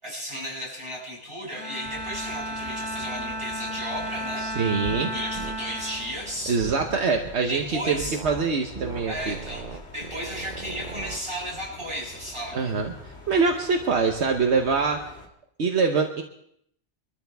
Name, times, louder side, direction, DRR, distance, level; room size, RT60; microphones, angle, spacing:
voice 1, 0.0-4.5 5.1-6.6 7.5-8.2 9.1-12.8, equal, 25° right, -4 dB, 7.1 m, -34 dB
Bowed string instrument, 1.5-7.1, right 1 dB, 15° left, 6.3 m, -34 dB
sound 1, 1.8-15.3, left 2 dB, 70° left, 2.2 m, -46 dB
voice 2, 4.4-5.1 6.5-9.4 12.5-12.9 13.3-15.1 15.6-16.2, right 4 dB, 70° right, 3 dB, 1.3 m, -24 dB
sound 2, 4.8-5.1 5.3-5.6 6.6-7.3 8.0-8.5 8.7-11.2, right 4 dB, 45° right, 1.1 m, -38 dB
24.0 x 13.5 x 3.5 m, 0.71 s
omnidirectional pair, 1.2 m